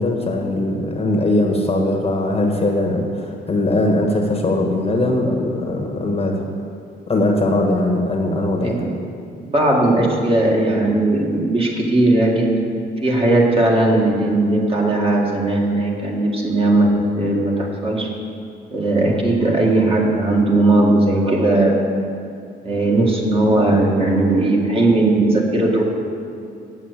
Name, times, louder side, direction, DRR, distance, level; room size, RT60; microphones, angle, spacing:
voice 1, 0.0-6.5 7.1-8.8, left 1 dB, 30° left, 2 dB, 1.3 m, -20 dB
voice 2, 8.6-8.9 9.5-12.6 13.0-18.1 18.7-21.8 22.6-25.8, right 2 dB, 30° right, -1 dB, 2.0 m, -17 dB
8.0 x 7.3 x 8.2 m, 2.4 s
cardioid pair, 90°, 20 cm